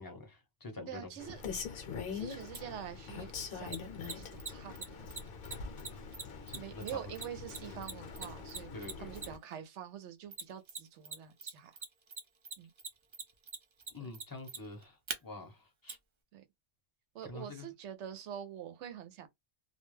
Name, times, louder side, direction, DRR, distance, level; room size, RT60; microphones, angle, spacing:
voice 1, 0.0-1.1 6.2-7.1 8.7-9.1 13.9-16.0 17.3-17.7, left 2 dB, 20° left, 0.6 m, -47 dB
voice 2, 0.9-1.4 2.1-5.0 6.6-11.8 12.6-12.7 14.0-14.1 16.3-16.4 17.1-19.3, right 10 dB, 85° right, 0.9 m, -46 dB
Rain, 1.2-9.4, left 6 dB, 60° left, 0.8 m, -44 dB
Mechanisms, 2.5-2.6 3.7-9.5 10.3-11.1 11.4-15.2 15.9-16.0, right 5 dB, 45° right, 0.4 m, -41 dB
2.3 x 2.1 x 3.1 m
omnidirectional pair, 1.2 m